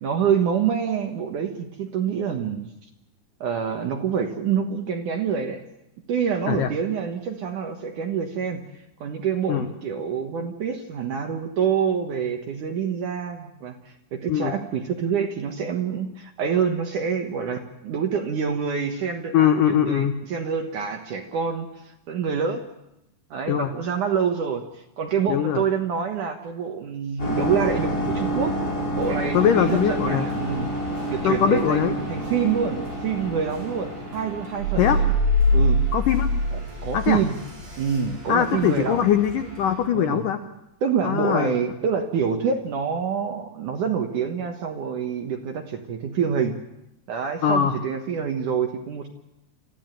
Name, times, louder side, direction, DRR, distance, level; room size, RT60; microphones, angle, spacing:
voice 1, 0.0-2.7 3.4-5.6 6.1-8.6 9.0-22.6 23.3-28.6 28.9-30.7 31.1-35.1 35.5-35.8 36.5-37.4 37.8-39.1 39.9-40.2 40.8-46.6 47.1-49.1, right 7 dB, 65° right, 4 dB, 2.1 m, -26 dB
voice 2, 19.3-20.2 23.5-23.7 25.3-25.6 29.3-30.3 31.2-32.0 34.8-35.0 35.9-36.3 36.9-37.2 38.3-40.4 41.0-41.5 47.4-47.8, left 9 dB, 75° left, 8 dB, 1.9 m, -21 dB
sound 1, 27.2-34.8, equal, 20° left, 5.9 m, -29 dB
sound 2, 29.0-39.8, right 1 dB, 45° right, 8.0 m, -43 dB
sound 3, 34.6-37.1 37.5-37.6, left 1 dB, 35° left, 7.9 m, -22 dB
26.0 x 15.0 x 9.1 m, 0.88 s
omnidirectional pair, 5.1 m